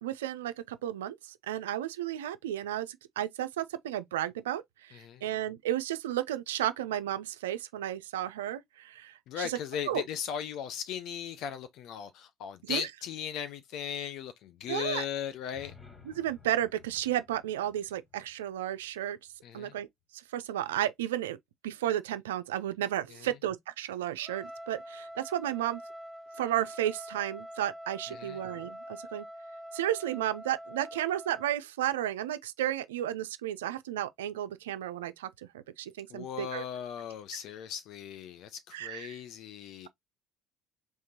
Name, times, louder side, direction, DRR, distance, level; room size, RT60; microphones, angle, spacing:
voice 1, 0.0-9.6 9.9-10.0 12.6-12.9 14.7-15.1 16.0-19.2 19.5-19.9 20.1-21.4 21.6-25.8 26.4-29.3 29.7-35.3 35.8-36.6 38.7-39.2, right 12 dB, 80° right, 0.3 m, -33 dB
voice 2, 4.9-5.2 9.3-15.7 19.4-19.7 23.2-23.3 28.1-28.4 36.1-39.9, left 9 dB, 60° left, 0.5 m, -37 dB
sound 1, 15.5-19.4, left 6 dB, 20° left, 1.1 m, -57 dB
Trumpet, 24.2-31.5, equal, 5° right, 0.4 m, -45 dB
3.6 x 3.1 x 2.7 m
hypercardioid pair, 65°, 0 cm